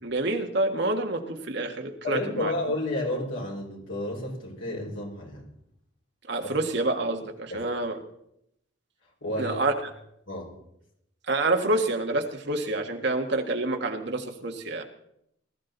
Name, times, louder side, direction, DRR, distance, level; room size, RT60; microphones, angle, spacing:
voice 1, 0.0-2.5 6.3-8.0 9.4-9.7 11.3-14.8, right 2 dB, 55° right, 4 dB, 1.7 m, -27 dB
voice 2, 2.0-5.5 6.4-6.6 7.5-7.6 9.2-9.6 10.3-10.5, left 1 dB, 80° left, -2 dB, 5.5 m, -31 dB
20.0 x 13.5 x 4.0 m, 0.78 s
head